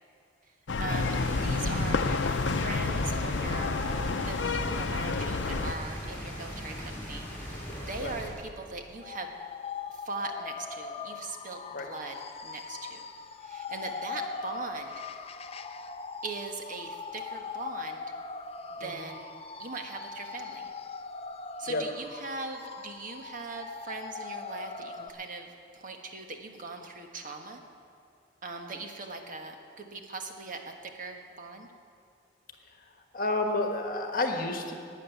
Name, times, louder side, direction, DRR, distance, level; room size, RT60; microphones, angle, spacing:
sound 1, 0.7-5.7, left 4 dB, 75° left, 0.6 m, -29 dB
voice 1, 0.8-3.8 4.1-9.3 10.0-12.2 12.4-13.1 13.4-15.0 16.2-18.1 18.7-19.3 19.6-20.7 21.6-25.5 25.7-27.6 28.4-31.7, right 3 dB, 45° right, 4 dB, 1.4 m, -40 dB
sound 2, 0.9-8.3, equal, 10° left, 4.2 m, -38 dB
sound 3, 9.0-25.1, left 5 dB, 35° left, 0.6 m, -41 dB
voice 2, 33.1-34.7, left 2 dB, 50° left, 4 dB, 1.4 m, -30 dB
13.0 x 9.0 x 9.0 m, 2.4 s
head